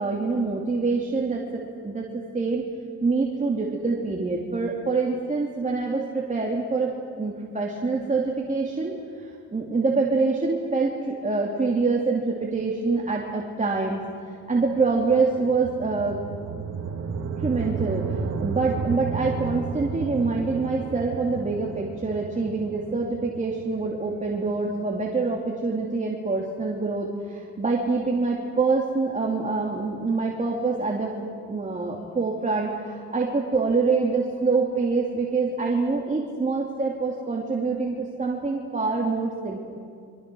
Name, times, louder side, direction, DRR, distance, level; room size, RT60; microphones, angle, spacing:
voice 1, 0.0-2.6 3.0-6.9 7.2-9.0 9.5-14.0 14.5-16.2 17.4-31.1 31.5-39.6, right 4 dB, 25° right, -2 dB, 3.0 m, -25 dB
sound 1, 14.5-24.7, right 6 dB, 60° right, 2.2 m, -33 dB
28.5 x 23.5 x 6.4 m, 2.3 s
cardioid pair, 90°, 30 cm